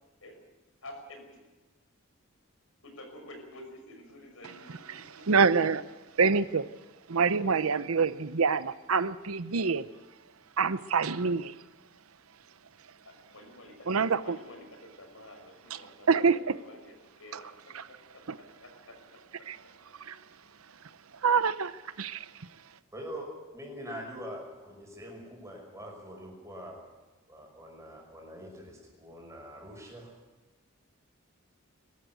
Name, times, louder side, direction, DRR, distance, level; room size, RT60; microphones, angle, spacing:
voice 1, 0.8-1.4 2.8-4.8 13.3-13.7 14.2-17.5 18.6-18.9, left 1 dB, 75° left, 4 dB, 5.8 m, -49 dB
voice 2, 5.3-5.8 6.2-6.6 7.1-9.8 10.6-11.5 13.9-14.4 16.1-16.4 17.3-17.4 17.7-17.8 18.3-18.4 19.5-19.6 20.1-20.2 21.2-21.7 22.0-22.2, right 5 dB, 85° right, 14 dB, 0.8 m, -26 dB
voice 3, 22.9-27.0 27.3-30.2, equal, 15° right, 0 dB, 5.8 m, -44 dB
22.5 x 13.0 x 9.2 m, 1.1 s
head